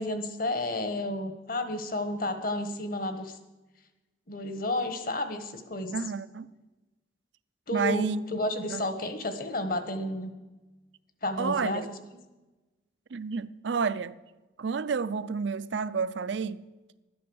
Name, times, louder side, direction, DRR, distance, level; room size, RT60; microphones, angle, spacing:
voice 1, 0.0-3.4 4.3-6.0 7.7-10.3 11.2-11.8, left 1 dB, 50° left, 1.3 m, -31 dB
voice 2, 5.9-6.5 7.7-8.2 8.7-8.9 11.4-11.9 13.1-14.2 14.6-16.7, right 5 dB, 75° right, 0.5 m, -30 dB
12.0 x 9.6 x 7.1 m
head